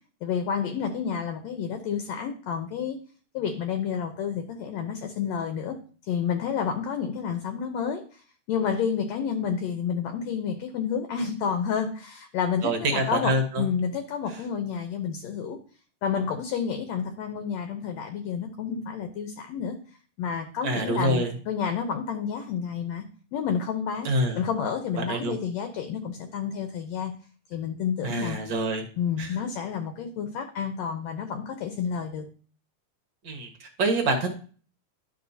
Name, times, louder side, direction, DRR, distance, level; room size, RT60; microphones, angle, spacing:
voice 1, 0.2-3.0 3.3-5.8 6.1-8.0 8.5-15.6 16.0-19.8 20.2-23.0 23.3-24.1 24.3-27.1 27.5-28.4 29.0-32.2, left 7 dB, 70° left, 6 dB, 1.8 m, -30 dB
voice 2, 12.6-13.7 20.6-21.3 24.0-24.4 25.0-25.3 28.0-28.8 29.2-29.3 33.2-34.3, right 2 dB, 50° right, 4 dB, 1.5 m, -26 dB
11.0 x 6.3 x 2.7 m, 0.40 s
omnidirectional pair, 3.6 m